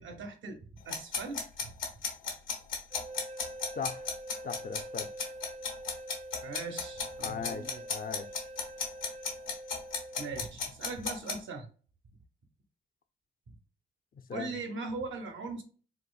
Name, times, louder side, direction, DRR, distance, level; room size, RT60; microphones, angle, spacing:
voice 1, 0.0-1.7 6.4-7.8 10.2-11.7 13.5-13.6 14.3-15.6, right 3 dB, 75° right, 0.8 m, -40 dB
sound 1, 0.9-11.3, left 5 dB, 90° left, 1.2 m, -34 dB
sound 2, 2.9-10.5, right 1 dB, 35° right, 0.5 m, -45 dB
voice 2, 3.7-4.1 4.4-5.1 7.2-8.3 14.3-14.5, left 6 dB, 45° left, 0.5 m, -38 dB
4.1 x 2.5 x 2.3 m
cardioid pair, 60°, 20 cm